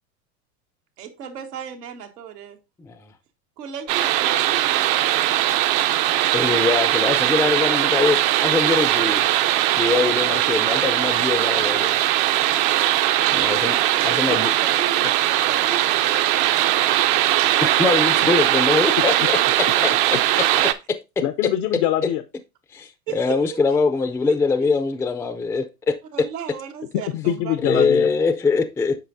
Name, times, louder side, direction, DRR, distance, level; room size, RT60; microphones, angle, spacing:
voice 1, 1.0-2.6 3.6-6.1 13.2-13.5 13.9-17.3 23.1-23.8 26.1-27.9, right 8 dB, 90° right, 1.5 m, -36 dB
voice 2, 2.8-3.1 6.3-9.3 9.8-12.0 13.3-14.5 17.6-19.4 19.8-19.9 20.6-20.7 22.7-26.0 27.6-29.0, left 4 dB, 5° left, 0.4 m, -22 dB
sound 1, 3.9-20.7, right 14 dB, 55° right, 0.7 m, -20 dB
voice 3, 21.2-22.2 27.1-28.1, left 12 dB, 75° left, 0.7 m, -23 dB
8.2 x 5.6 x 2.6 m
hypercardioid pair, 100°, 46 cm